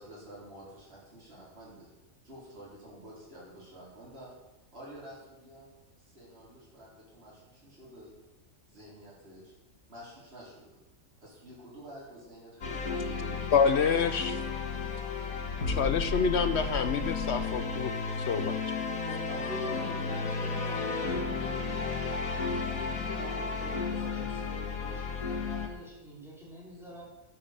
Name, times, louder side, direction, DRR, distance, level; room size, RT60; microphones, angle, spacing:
voice 1, 0.0-1.9 2.2-4.4 4.7-5.7 6.0-8.2 8.7-9.5 9.9-10.7 11.2-14.3, equal, 45° right, -7 dB, 4.4 m, -50 dB
sound 1, 12.6-25.7, left 4 dB, 80° left, 2.0 m, -33 dB
voice 2, 13.5-14.4 15.7-17.9 18.3-18.5, left 6 dB, 60° left, 11 dB, 0.8 m, -27 dB
voice 3, 18.9-22.1 22.7-27.0, equal, ahead, -6 dB, 4.8 m, -45 dB
11.5 x 8.8 x 6.7 m, 1.0 s
omnidirectional pair, 1.5 m